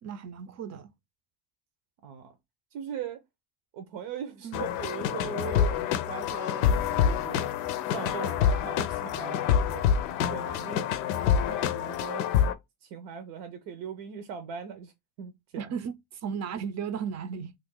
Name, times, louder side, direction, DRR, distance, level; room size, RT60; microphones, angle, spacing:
voice 1, 0.0-0.9 4.4-4.7 15.6-17.5, right 7 dB, 40° right, 0.5 m, -35 dB
voice 2, 2.0-2.4 2.7-3.2 3.7-7.5 7.8-9.8 10.2-12.2 12.8-14.9 15.2-15.7, right 6 dB, 70° right, 0.7 m, -40 dB
sound 1, 4.5-12.5, left 8 dB, 85° left, 0.6 m, -27 dB
2.6 x 2.4 x 3.6 m
supercardioid pair, 100°, 44 cm